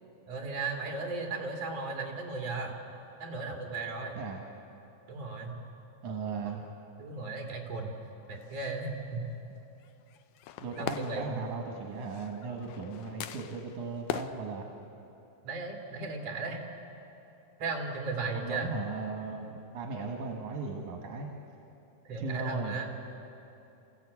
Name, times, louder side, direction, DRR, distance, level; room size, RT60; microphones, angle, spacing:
voice 1, 0.3-2.8 3.2-4.2 5.1-5.6 6.5-6.7 7.0-8.0 8.3-9.3 10.8-11.5 15.4-16.6 17.6-18.7 22.1-22.9, right 3 dB, 60° right, 0 dB, 3.7 m, -36 dB
voice 2, 6.0-6.6 10.6-14.7 18.3-21.3 22.2-22.7, right 4 dB, 80° right, 1 dB, 3.1 m, -37 dB
sound 1, 8.1-8.8 9.8-14.3, left 11 dB, 85° left, 2.2 m, -41 dB
28.5 x 15.5 x 8.6 m, 2.9 s
omnidirectional pair, 3.4 m